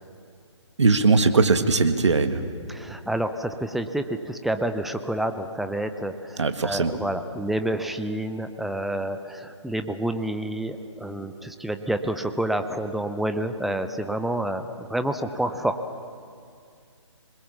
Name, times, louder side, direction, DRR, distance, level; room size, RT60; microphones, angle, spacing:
voice 1, 0.8-2.4 6.4-6.9, right 4 dB, 70° right, 8 dB, 1.8 m, -20 dB
voice 2, 2.7-15.8, right 1 dB, ahead, 8 dB, 0.6 m, -28 dB
27.0 x 21.0 x 7.2 m, 2.3 s
figure-of-eight pair, 145°, 16 cm